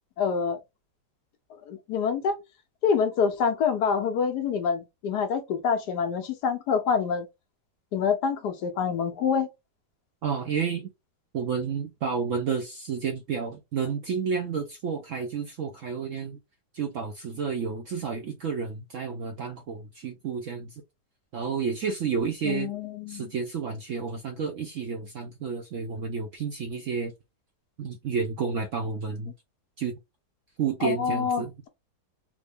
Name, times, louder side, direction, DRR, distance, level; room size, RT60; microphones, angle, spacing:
voice 1, 0.2-0.6 1.7-2.4 2.8-7.3 7.9-9.5 22.4-23.3 30.8-31.7, left 6 dB, 70° left, 1.2 m, -26 dB
voice 2, 10.2-10.9 11.3-16.4 16.7-20.8 21.3-22.7 23.1-27.1 27.8-29.3 29.8-29.9 30.6-31.5, right 6 dB, 70° right, 0.7 m, -30 dB
3.7 x 2.1 x 3.4 m
omnidirectional pair, 1.9 m